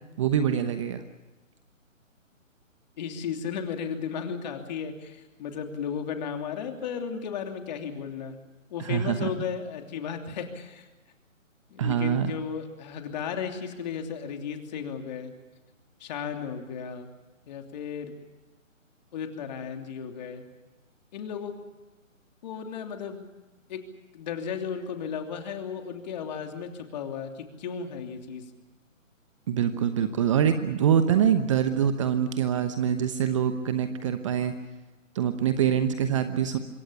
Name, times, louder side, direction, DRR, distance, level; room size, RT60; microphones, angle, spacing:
voice 1, 0.2-1.0 8.8-9.3 11.8-12.3 29.5-34.5 35.1-36.6, right 8 dB, 25° right, 9 dB, 1.0 m, -24 dB
voice 2, 3.0-8.4 8.7-10.9 11.7-15.3 16.0-17.1 17.5-18.1 19.1-20.4 21.1-21.5 22.4-23.2 23.7-23.8 24.1-28.4, left 7 dB, 35° left, 4 dB, 3.0 m, -34 dB
26.0 x 22.5 x 6.7 m, 1.2 s
figure-of-eight pair, 150°, 40 cm